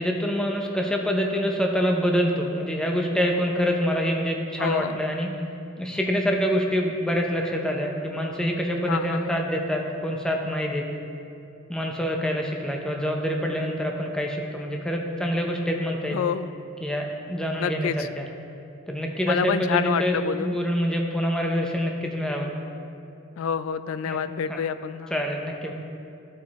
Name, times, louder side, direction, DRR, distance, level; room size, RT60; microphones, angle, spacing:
voice 1, 0.0-5.3 5.8-10.9 11.7-16.2 16.8-18.3 18.9-22.5 24.1-24.2 25.1-25.7, equal, 5° left, 1 dB, 0.6 m, -26 dB
voice 2, 4.6-5.0 8.9-9.4 16.1-16.5 17.6-18.1 19.3-20.6 23.4-25.1, left 7 dB, 85° left, 13 dB, 0.3 m, -28 dB
12.5 x 4.7 x 4.1 m, 2.7 s
head